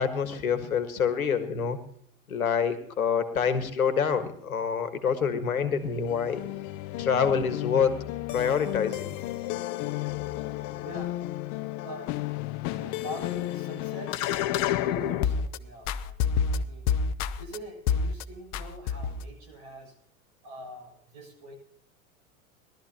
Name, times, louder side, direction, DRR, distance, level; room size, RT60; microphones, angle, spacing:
voice 1, 0.0-1.8 2.3-6.4 7.0-8.0 8.3-9.1, left 6 dB, 85° left, 10 dB, 1.6 m, -26 dB
sound 1, 5.8-15.6 15.9-17.6 17.9-18.2 18.5-19.3, left 9 dB, 45° left, 0.8 m, -30 dB
voice 2, 10.8-11.1 11.8-12.1 12.7-14.2 14.7-16.2 16.6-16.9 17.4-19.9 20.4-21.6, right 1 dB, 55° right, 2 dB, 7.5 m, -43 dB
20.5 x 13.0 x 2.9 m, 0.67 s
hypercardioid pair, 90°, 41 cm